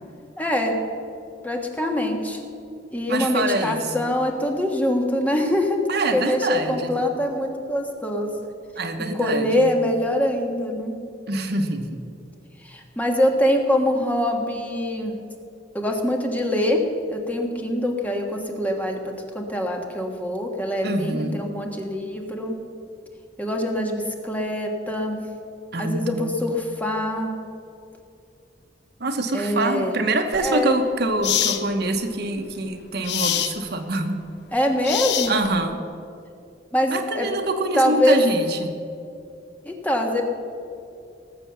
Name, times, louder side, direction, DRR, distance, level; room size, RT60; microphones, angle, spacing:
voice 1, 0.4-0.8 1.4-2.4 2.9-5.8 6.1-8.3 9.2-10.9 12.6-15.1 15.7-16.8 17.1-22.5 23.4-25.2 25.8-27.3 29.3-29.9 30.4-30.7 34.5-35.4 36.7-37.3 37.7-38.2 39.6-40.2, left 1 dB, 10° left, 1 dB, 1.5 m, -24 dB
voice 2, 3.1-4.1 5.9-6.9 8.8-9.7 11.3-12.0 20.8-21.5 25.7-26.4 29.0-34.2 35.3-35.8 36.9-38.8, right 2 dB, 60° right, 6 dB, 1.1 m, -25 dB
sound 1, 30.3-30.5 31.2-31.6 33.0-33.6 34.8-35.6, left 10 dB, 65° left, 0.8 m, -24 dB
19.0 x 7.4 x 6.9 m, 2.5 s
head